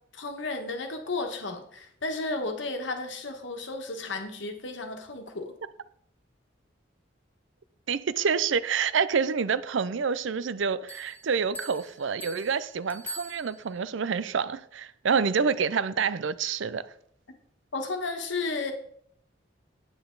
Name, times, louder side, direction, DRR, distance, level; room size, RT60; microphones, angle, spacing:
voice 1, 0.1-5.5 17.7-18.7, left 3 dB, 75° left, 1.4 m, -33 dB
voice 2, 7.9-16.8, right 6 dB, 80° right, 0.5 m, -27 dB
sound 1, 10.9-13.9, right 1 dB, 10° left, 0.5 m, -44 dB
9.1 x 8.8 x 3.9 m
head